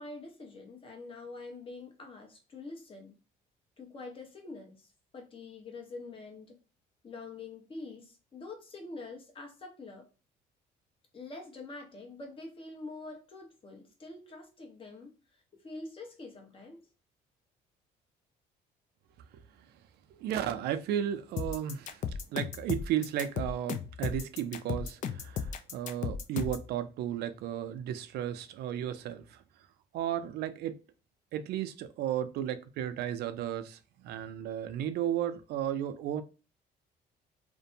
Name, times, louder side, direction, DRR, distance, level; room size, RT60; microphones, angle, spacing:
voice 1, 0.0-3.2 3.8-6.5 7.0-10.0 11.1-16.8, left 3 dB, 30° left, 0.9 m, -45 dB
voice 2, 20.1-29.4 29.9-30.8 31.3-36.2, right 10 dB, 70° right, 0.4 m, -34 dB
sound 1, 21.4-26.7, left 7 dB, 50° left, 0.4 m, -35 dB
2.5 x 2.1 x 2.6 m
cardioid pair, 110°, 17 cm